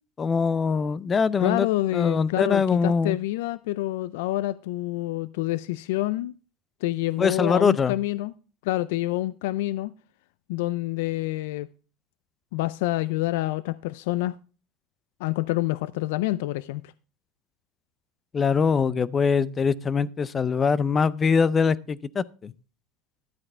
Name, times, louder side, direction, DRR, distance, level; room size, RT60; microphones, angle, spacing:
voice 1, 0.2-1.7 1.9-3.2 7.2-7.9 18.3-22.5, left 5 dB, 25° left, 0.5 m, -23 dB
voice 2, 1.4-6.3 6.8-8.3 8.6-9.9 10.5-11.7 12.5-14.4 15.2-16.9, left 17 dB, 80° left, 0.4 m, -27 dB
12.5 x 8.5 x 3.3 m
supercardioid pair, 135°, 0 cm